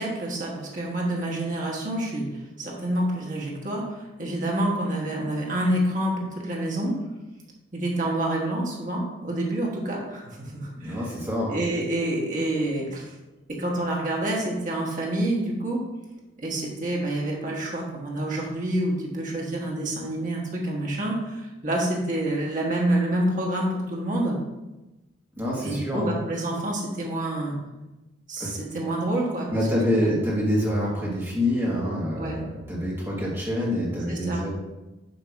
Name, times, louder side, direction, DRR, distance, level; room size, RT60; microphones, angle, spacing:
voice 1, 0.0-6.9 7.7-11.0 11.5-13.1 13.6-15.8 16.4-24.3 25.6-27.5 28.3-29.6 32.2-32.4 34.1-34.4, right 1 dB, 40° right, -2 dB, 1.4 m, -27 dB
voice 2, 10.8-11.6 25.4-26.1 28.4-28.5 29.5-34.5, equal, 10° right, -7 dB, 1.4 m, -26 dB
6.8 x 2.9 x 5.8 m, 1.0 s
head